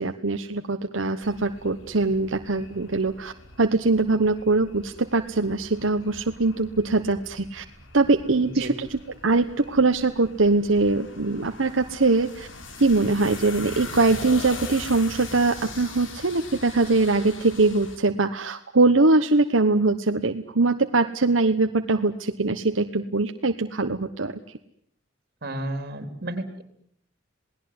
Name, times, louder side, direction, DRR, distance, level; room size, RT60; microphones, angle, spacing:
voice 1, 0.0-3.3 3.6-7.6 7.9-12.5 12.8-24.3, right 3 dB, 85° right, 6 dB, 1.2 m, -22 dB
sound 1, 1.2-18.0, left 3 dB, 75° left, 4.1 m, -42 dB
voice 2, 8.4-8.7 25.4-26.6, right 1 dB, 55° right, 9 dB, 3.9 m, -32 dB
28.0 x 19.0 x 9.6 m, 0.71 s
head